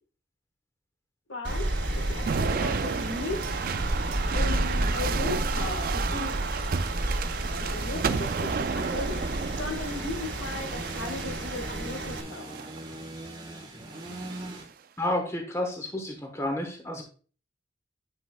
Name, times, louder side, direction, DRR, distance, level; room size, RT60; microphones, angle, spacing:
voice 1, 1.3-1.7 2.0-3.5 4.3-6.3 7.6-9.2 9.6-12.5, left 2 dB, 75° left, 5 dB, 1.5 m, -36 dB
Rain, 1.4-12.2, right 1 dB, 70° right, 2.3 m, -31 dB
sound 1, 2.3-11.6 12.3-12.8 13.9-14.6, right 5 dB, 45° right, 0.3 m, -32 dB
sound 2, 8.8-14.6, right 1 dB, 25° right, 1.2 m, -41 dB
voice 2, 15.0-17.0, left 1 dB, 15° left, 3 dB, 1.1 m, -30 dB
9.9 x 6.1 x 2.2 m, 0.39 s
head